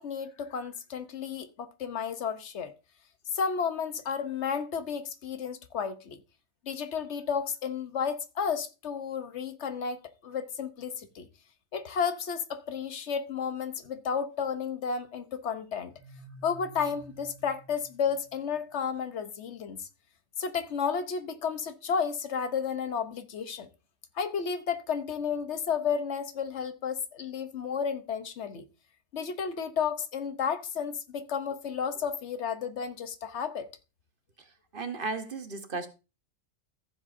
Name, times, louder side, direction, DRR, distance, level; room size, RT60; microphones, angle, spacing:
voice 1, 0.0-2.7 3.3-6.2 6.7-11.3 11.7-15.9 16.4-19.9 20.4-23.7 24.2-28.6 29.1-33.7, left 6 dB, 70° left, 1.2 m, -32 dB
sound 1, 15.9-18.7, right 2 dB, 25° right, 1.2 m, -51 dB
voice 2, 34.7-35.9, right 3 dB, 50° right, 1.2 m, -35 dB
14.5 x 7.4 x 2.6 m
omnidirectional pair, 1.2 m